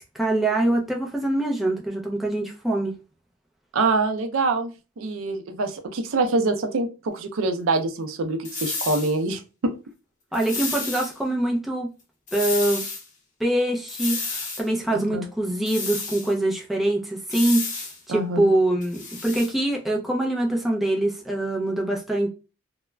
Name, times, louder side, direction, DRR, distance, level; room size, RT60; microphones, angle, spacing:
voice 1, 0.1-3.0 10.3-11.9 12.3-12.8 13.4-17.7 18.1-22.3, right 1 dB, ahead, 0.4 m, -24 dB
voice 2, 3.7-9.7 14.9-15.3 18.1-18.5, right 3 dB, 80° right, 0.5 m, -25 dB
sound 1, 8.4-9.1 10.3-11.1 12.3-13.0 13.9-14.6 15.7-16.3 17.3-18.0 18.8-19.5, left 3 dB, 35° left, 0.7 m, -31 dB
2.3 x 2.0 x 3.1 m
head